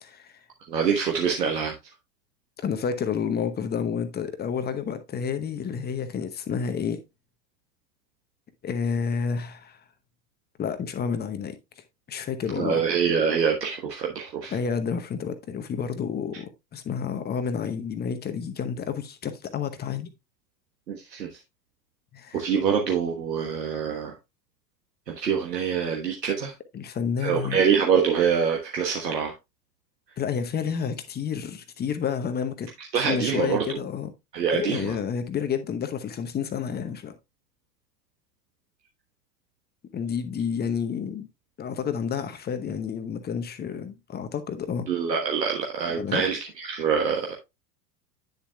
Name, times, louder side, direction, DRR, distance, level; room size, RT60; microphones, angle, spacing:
voice 1, 0.0-0.3 2.6-7.0 8.6-9.8 10.6-11.6 12.1-12.8 14.5-20.1 22.1-22.4 26.7-27.6 30.2-32.7 32.9-34.1 34.5-37.2 39.9-41.3 41.6-44.9 45.9-46.2, left 7 dB, 20° left, 0.9 m, -30 dB
voice 2, 0.7-1.7 12.5-14.6 20.9-21.3 22.3-24.1 25.1-26.5 27.2-29.3 32.8-33.8 34.3-34.9 44.9-47.4, right 7 dB, 75° right, 1.4 m, -25 dB
9.7 x 7.0 x 2.3 m
figure-of-eight pair, 90°, 49 cm